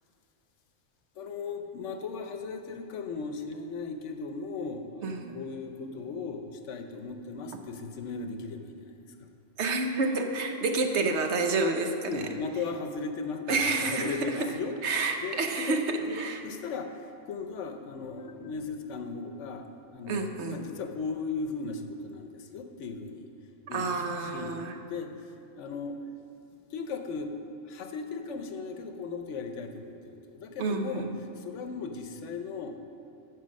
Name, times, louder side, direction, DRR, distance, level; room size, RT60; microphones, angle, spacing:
voice 1, 1.1-9.3 12.1-14.7 15.2-15.8 16.1-23.3 23.7-24.6 24.9-26.0 26.7-27.3 27.6-31.1 31.3-32.8, left 4 dB, 70° left, 6 dB, 1.0 m, -37 dB
voice 2, 5.0-5.4 9.6-12.2 13.5-14.5 14.8-16.4 20.1-20.7 23.7-24.8 30.6-31.1, right 3 dB, 65° right, 4 dB, 1.0 m, -29 dB
9.3 x 6.6 x 6.2 m, 2.5 s
omnidirectional pair, 1.3 m